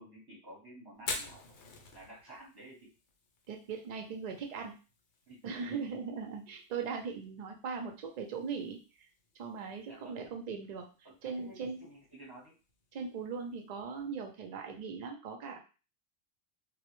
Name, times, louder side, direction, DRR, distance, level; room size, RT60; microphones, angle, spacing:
voice 1, 0.0-1.5 1.9-2.9 5.3-5.7 9.9-10.2 11.0-12.6, right 1 dB, 25° right, -4 dB, 0.8 m, -52 dB
Fire, 0.9-14.8, left 4 dB, 85° left, 0.9 m, -50 dB
voice 2, 3.5-4.7 5.4-8.8 9.3-10.9 11.2-11.8 12.9-15.6, right 5 dB, 55° right, 3 dB, 0.4 m, -39 dB
2.1 x 2.0 x 2.9 m, 0.33 s
omnidirectional pair, 1.1 m